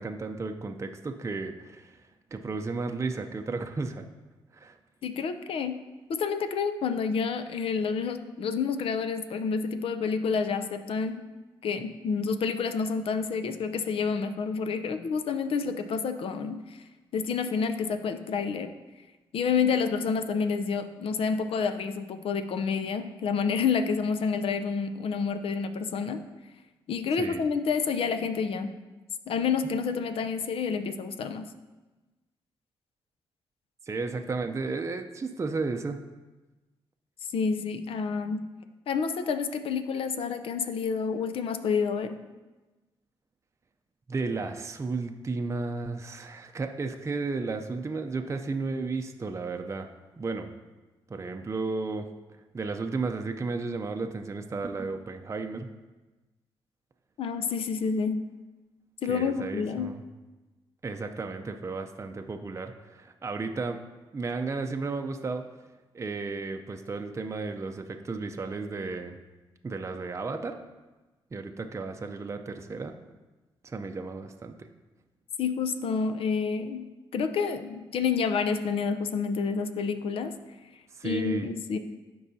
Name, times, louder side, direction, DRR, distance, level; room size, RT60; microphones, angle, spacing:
voice 1, 0.0-2.0 2.3-4.1 4.5-4.8 27.2-27.4 33.9-36.0 44.1-49.9 50.2-50.5 51.1-52.1 52.5-55.7 59.1-60.0 60.8-63.8 64.1-65.5 65.9-69.2 69.6-70.6 71.3-72.9 73.6-74.7 80.9-81.5, right 3 dB, 30° right, 5 dB, 0.5 m, -33 dB
voice 2, 5.0-5.8 6.1-11.2 11.6-16.6 17.1-18.7 19.3-26.2 26.9-28.7 29.3-31.5 37.3-38.5 38.9-42.2 57.2-58.2 59.0-59.9 75.4-76.8 77.1-80.3 81.0-81.8, left 5 dB, 70° left, 10 dB, 0.6 m, -29 dB
12.5 x 4.7 x 2.7 m, 1.2 s
cardioid pair, 70°, 10 cm